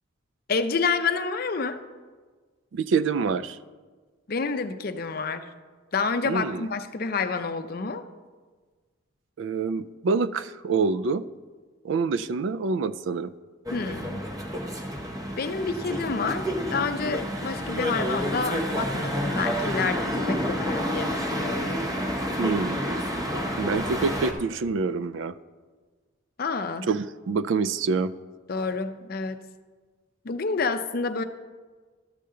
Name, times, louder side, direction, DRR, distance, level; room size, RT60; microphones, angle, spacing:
voice 1, 0.5-1.8 4.3-5.5 5.9-8.0 13.7-14.2 15.4-21.8 26.4-26.9 28.5-29.4 30.2-31.2, left 4 dB, 50° left, 9 dB, 0.5 m, -29 dB
voice 2, 2.7-3.6 6.3-6.7 9.4-11.2 11.8-13.3 22.4-22.8 23.6-25.3 26.9-28.1, right 4 dB, 70° right, 16 dB, 0.3 m, -26 dB
sound 1, 13.7-24.3, equal, 20° right, 0.7 m, -29 dB
12.5 x 6.7 x 3.7 m, 1.4 s
head